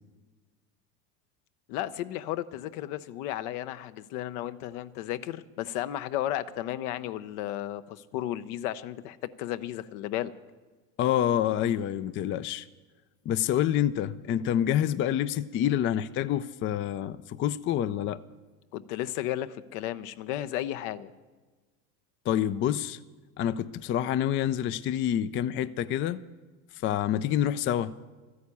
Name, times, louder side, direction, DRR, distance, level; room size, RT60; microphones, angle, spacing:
voice 1, 1.7-10.3 18.7-21.1, left 13 dB, 65° left, 0.8 m, -34 dB
voice 2, 11.0-12.7 13.3-18.2 22.3-23.0 23.4-26.2 26.8-27.9, left 10 dB, 30° left, 0.4 m, -27 dB
13.0 x 9.5 x 8.4 m
hypercardioid pair, 90°, 47 cm